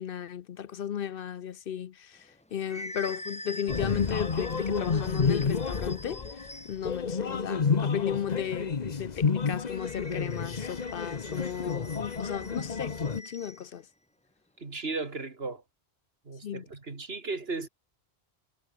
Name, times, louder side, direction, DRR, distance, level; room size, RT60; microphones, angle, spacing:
voice 1, 0.0-13.8 16.4-16.7, left 9 dB, 60° left, 0.8 m, -35 dB
sound 1, 2.2-7.0 9.7-13.7, left 1 dB, 5° left, 1.1 m, -45 dB
sound 2, 3.7-13.2, left 5 dB, 40° left, 1.1 m, -30 dB
voice 2, 14.6-15.6 16.3-17.7, right 3 dB, 65° right, 2.7 m, -35 dB
omnidirectional pair, 1.1 m